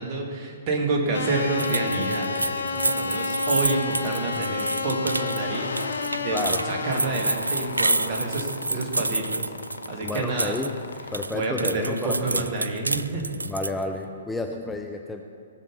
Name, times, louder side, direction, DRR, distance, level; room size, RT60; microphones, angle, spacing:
voice 1, 0.0-6.4 6.6-9.5 9.9-10.6 11.3-13.2, right 3 dB, 40° right, 0 dB, 2.4 m, -28 dB
sound 1, 1.1-11.3, left 4 dB, 70° left, 0.8 m, -31 dB
sound 2, 1.6-10.7 11.0-13.8, right 2 dB, 85° right, 0.3 m, -28 dB
voice 2, 6.3-6.6 10.0-10.8 11.1-12.5 13.4-15.2, left 2 dB, 5° left, 3 dB, 0.6 m, -31 dB
17.5 x 6.6 x 5.4 m, 2.3 s
figure-of-eight pair, 120°, 0 cm